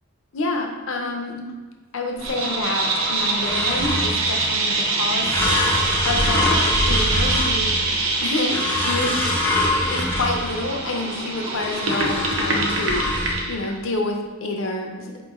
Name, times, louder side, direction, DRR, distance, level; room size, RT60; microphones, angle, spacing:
voice 1, 0.3-1.4 1.9-5.4 6.1-7.7 8.2-9.2 9.8-15.2, left 2 dB, 70° left, 3 dB, 0.6 m, -28 dB
sound 1, 2.2-13.7, right 3 dB, 75° right, 0.6 m, -24 dB
sound 2, 3.5-4.3 5.3-8.0 8.5-10.7 11.6-13.3, left 1 dB, 10° left, 0.4 m, -24 dB
4.5 x 3.0 x 3.5 m, 1.3 s
head